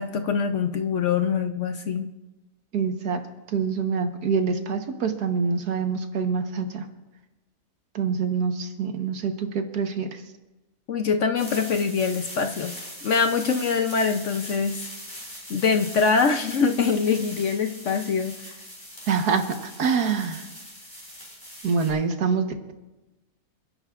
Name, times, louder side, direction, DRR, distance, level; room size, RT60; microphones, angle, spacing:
voice 1, 0.0-2.1 10.9-12.8 13.0-14.9 15.5-18.4, left 5 dB, 60° left, 6 dB, 0.9 m, -24 dB
voice 2, 2.7-3.2 3.5-6.9 7.9-10.2 19.1-20.5 21.6-22.7, right 5 dB, 75° right, 5 dB, 1.7 m, -25 dB
sound 1, 11.4-21.9, equal, 15° left, 6.1 m, -41 dB
29.0 x 10.5 x 2.5 m, 1.0 s
omnidirectional pair, 1.7 m